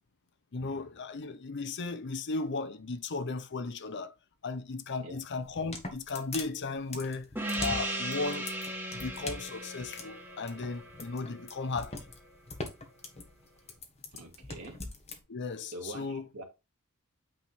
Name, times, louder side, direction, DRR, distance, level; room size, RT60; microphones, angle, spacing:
voice 1, 0.5-4.1 4.4-7.3 7.6-8.5 8.9-12.0 15.3-16.3, left 3 dB, 50° left, 0.7 m, -36 dB
sound 1, 5.4-15.2, left 3 dB, 30° left, 1.3 m, -42 dB
Gong, 7.4-12.4, right 1 dB, 10° right, 1.3 m, -37 dB
voice 2, 14.1-14.9 15.7-16.4, right 2 dB, 75° right, 2.1 m, -44 dB
8.8 x 3.5 x 4.2 m
head